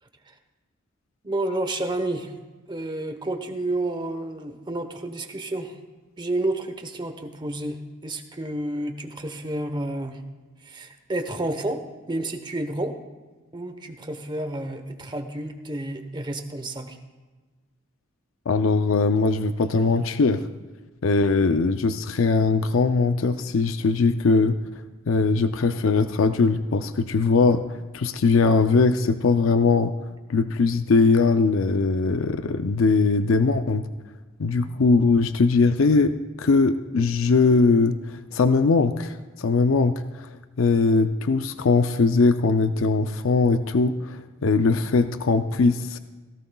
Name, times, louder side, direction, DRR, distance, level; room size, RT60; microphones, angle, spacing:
voice 1, 1.2-2.3 2.7-5.8 6.2-10.2 10.6-11.8 12.1-13.0 13.5-17.0, right 1 dB, 20° right, 7 dB, 1.0 m, -30 dB
voice 2, 18.5-20.4 21.0-24.5 25.1-27.6 27.9-29.9 30.3-33.8 34.4-36.1 36.4-38.0 38.3-40.0 40.6-46.0, left 4 dB, 75° left, 10 dB, 0.5 m, -20 dB
18.0 x 16.5 x 2.3 m, 1.3 s
head